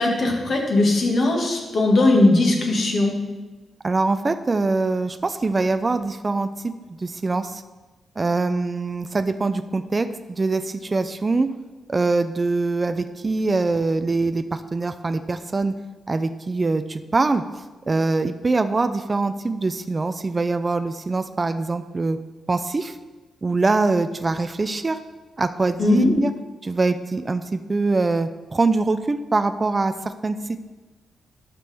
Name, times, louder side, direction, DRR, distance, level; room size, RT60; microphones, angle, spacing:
voice 1, 0.0-3.1 25.8-26.1, left 2 dB, 55° left, 0 dB, 1.7 m, -19 dB
voice 2, 3.8-6.5 7.0-7.6 8.2-11.5 11.9-15.7 16.1-17.4 17.9-22.2 22.5-22.9 23.4-25.0 25.4-26.3 26.6-29.9 30.2-30.6, right 3 dB, 25° right, 9 dB, 0.4 m, -23 dB
11.5 x 6.0 x 3.5 m, 1.2 s
wide cardioid pair, 130°, 0 cm